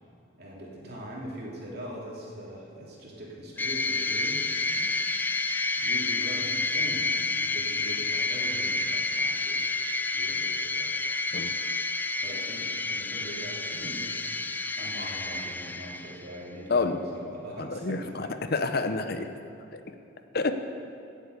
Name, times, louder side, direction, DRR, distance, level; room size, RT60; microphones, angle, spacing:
voice 1, 0.4-4.4 4.7-4.8 5.8-9.7 10.1-10.9 12.2-12.6 12.9-14.2 14.8-18.3, equal, 50° right, -4 dB, 3.1 m, -41 dB
sound 1, 3.6-16.4, left 3 dB, 10° left, 0.3 m, -29 dB
voice 2, 17.6-19.3 19.7-19.8 20.3-20.5, left 3 dB, 50° left, 8 dB, 0.7 m, -28 dB
16.0 x 8.1 x 8.1 m, 2.6 s
head